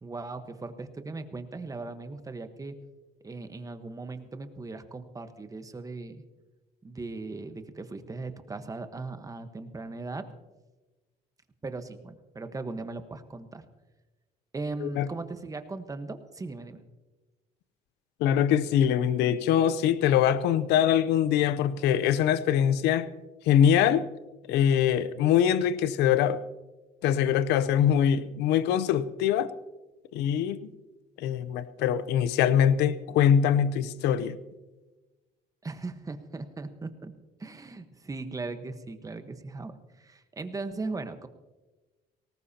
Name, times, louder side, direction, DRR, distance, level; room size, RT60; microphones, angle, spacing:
voice 1, 0.0-2.8 3.2-6.2 6.8-10.3 11.6-13.6 14.5-16.8 35.6-37.1 37.4-41.3, right 3 dB, 20° right, 8 dB, 1.2 m, -38 dB
voice 2, 18.2-23.1 23.5-24.0 24.5-26.4 27.0-29.5 30.1-30.6 31.2-34.4, left 9 dB, 90° left, 15 dB, 0.7 m, -23 dB
19.5 x 18.5 x 2.9 m, 1.2 s
cardioid pair, 110°, 17 cm